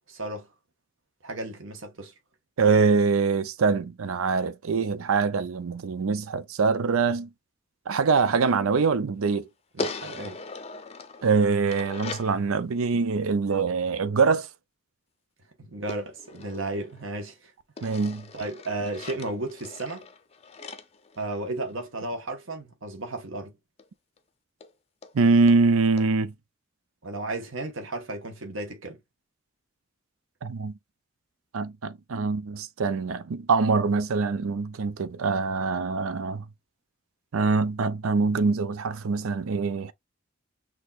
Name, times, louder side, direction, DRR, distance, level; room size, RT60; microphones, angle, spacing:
voice 1, 0.1-0.5 1.2-2.1 9.7-10.4 15.6-17.5 18.3-20.1 21.2-23.5 27.0-29.0, right 2 dB, 70° right, 1.2 m, -34 dB
voice 2, 2.6-7.3 7.9-9.5 11.2-14.5 17.8-18.3 25.1-26.3 30.4-30.7 31.5-36.4 37.3-39.9, right 4 dB, 90° right, 0.5 m, -24 dB
sound 1, 9.8-12.4 15.9-17.3 17.8-21.9 23.8-23.9 24.2-24.3 24.6-24.7 25.0-25.1 25.5-25.6 26.0-26.1, left 3 dB, 30° left, 0.5 m, -39 dB
6.3 x 3.0 x 2.4 m
head